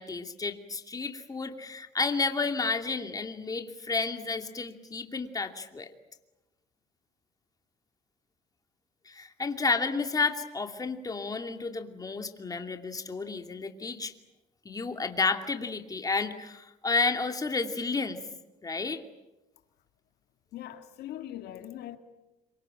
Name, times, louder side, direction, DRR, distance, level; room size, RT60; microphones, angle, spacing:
voice 1, 0.0-5.9 9.1-14.1 14.6-18.2 18.6-19.0, left 4 dB, 20° left, 2.6 m, -31 dB
voice 2, 20.5-22.0, left 12 dB, 75° left, 2.2 m, -41 dB
26.5 x 25.0 x 9.0 m
cardioid pair, 110°, 17 cm